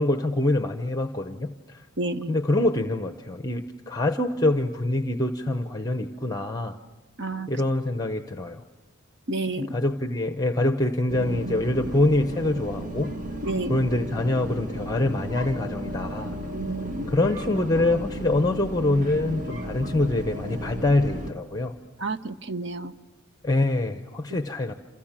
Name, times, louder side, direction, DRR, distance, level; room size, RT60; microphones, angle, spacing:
voice 1, 0.0-1.9 2.3-6.8 7.5-8.6 9.6-13.1 13.7-16.4 17.1-21.7 23.4-24.7, left 2 dB, 20° left, 8 dB, 0.8 m, -25 dB
voice 2, 2.0-2.4 7.2-7.5 9.3-9.7 13.4-13.8 16.5-17.1 22.0-22.9, right 2 dB, 55° right, 10 dB, 1.1 m, -30 dB
sound 1, 11.1-21.3, right 1 dB, 40° right, 1.9 m, -34 dB
28.0 x 28.0 x 7.5 m, 1.2 s
head